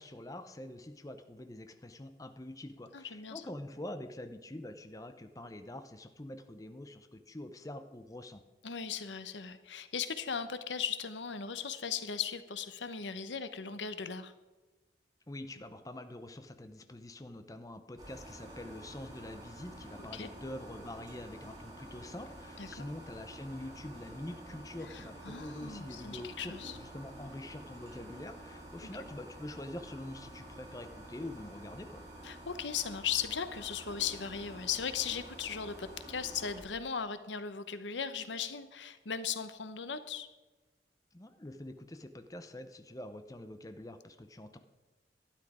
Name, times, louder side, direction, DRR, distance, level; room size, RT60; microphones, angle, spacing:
voice 1, 0.0-8.4 15.3-32.0 41.1-44.6, left 1 dB, 20° left, 8 dB, 0.7 m, -45 dB
voice 2, 2.9-3.4 8.6-14.3 20.1-20.3 22.6-22.9 24.9-26.8 32.2-40.3, left 7 dB, 90° left, 11 dB, 0.9 m, -37 dB
sound 1, 18.0-36.6, right 1 dB, 20° right, 2.8 m, -49 dB
12.0 x 10.5 x 4.9 m, 1.2 s
head